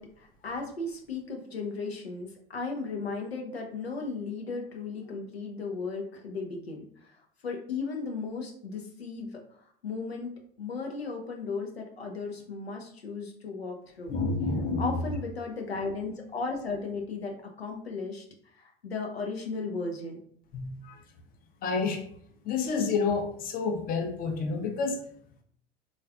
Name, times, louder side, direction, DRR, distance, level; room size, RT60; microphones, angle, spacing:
voice 1, 0.0-10.3 10.6-14.1 14.8-20.2, left 4 dB, 90° left, 1 dB, 0.5 m, -36 dB
voice 2, 14.1-15.0 20.5-21.0 21.6-22.0 22.4-25.0, left 4 dB, 30° left, 3 dB, 0.6 m, -29 dB
3.4 x 2.3 x 2.3 m, 0.62 s
figure-of-eight pair, 70°, 30 cm